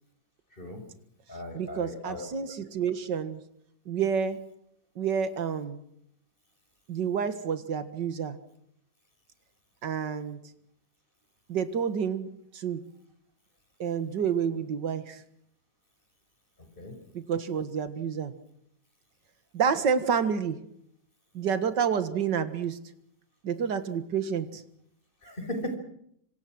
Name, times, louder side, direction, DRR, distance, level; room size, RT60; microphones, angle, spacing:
voice 1, 0.5-0.8 1.3-2.3 16.8-17.0 25.2-25.8, left 1 dB, 25° left, 6 dB, 5.7 m, -37 dB
voice 2, 1.5-3.4 3.9-4.4 5.0-5.8 6.9-8.4 9.8-10.4 11.5-12.3 12.5-12.8 13.8-15.2 17.1-18.3 19.5-20.6 21.3-22.8 23.4-24.6, right 7 dB, 70° right, 11 dB, 2.3 m, -29 dB
26.5 x 26.0 x 6.2 m, 0.72 s
omnidirectional pair, 2.0 m